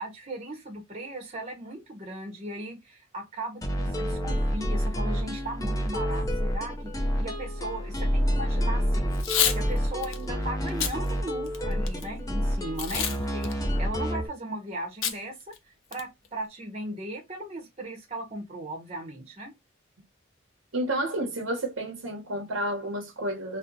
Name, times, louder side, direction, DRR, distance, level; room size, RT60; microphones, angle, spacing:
voice 1, 0.0-6.9 7.2-9.2 9.5-13.5 13.8-15.5 15.9-19.5, right 1 dB, 30° right, 0.8 m, -37 dB
sound 1, 3.6-14.3, equal, 15° left, 0.5 m, -28 dB
Packing tape duct tape / Tearing, 9.1-9.6 10.0-10.2 10.7-10.9 11.5-12.0 12.8-13.2 13.4-13.5 15.0-15.2 15.5-15.6 15.9-16.3, left 8 dB, 75° left, 0.5 m, -27 dB
voice 2, 20.7-23.6, right 1 dB, 85° right, 0.8 m, -30 dB
2.8 x 2.1 x 3.7 m
head